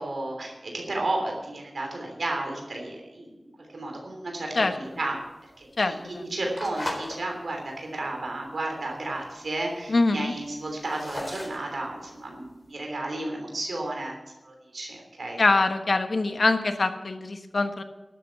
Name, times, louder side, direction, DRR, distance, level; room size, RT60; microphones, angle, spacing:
voice 1, 0.0-5.2 5.6-6.0 6.3-14.2 14.4-15.4, right 2 dB, 90° right, 1 dB, 3.2 m, -33 dB
sound 1, 4.8-7.2 7.6-8.0 8.5-8.6 8.7-8.8 9.0-9.6 10.1-12.7, left 1 dB, 35° left, 4.1 m, -37 dB
voice 2, 5.8-6.2 9.9-10.3 15.4-17.8, left 3 dB, 70° left, 7 dB, 1.2 m, -24 dB
12.0 x 8.1 x 8.1 m, 1.0 s
wide cardioid pair, 65°, 0 cm